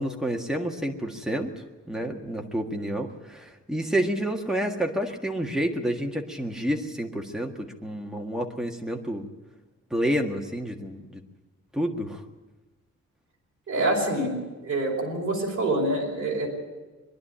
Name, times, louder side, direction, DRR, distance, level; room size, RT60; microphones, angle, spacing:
voice 1, 0.0-9.3 9.9-11.2 11.7-12.2, equal, ahead, 1 dB, 1.7 m, -29 dB
voice 2, 13.7-16.5, right 1 dB, 45° right, -1 dB, 5.1 m, -26 dB
23.5 x 11.0 x 9.9 m, 1.2 s
wide cardioid pair, 160°, 30 cm